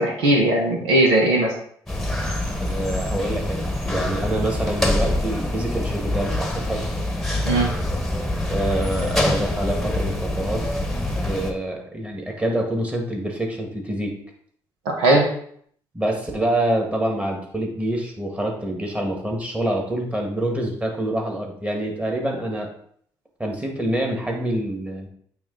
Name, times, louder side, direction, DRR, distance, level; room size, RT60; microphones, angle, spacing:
voice 1, 0.0-1.5 7.4-7.7 14.8-15.3, right 1 dB, 85° right, 0 dB, 1.4 m, -18 dB
sound 1, 1.9-11.5, left 1 dB, 5° left, 1.2 m, -25 dB
voice 2, 2.6-6.9 8.5-10.6 11.2-14.1 15.9-22.7 23.4-25.1, right 1 dB, 15° right, 1 dB, 1.9 m, -26 dB
8.4 x 3.1 x 4.0 m, 0.63 s
supercardioid pair, 60°, 9 cm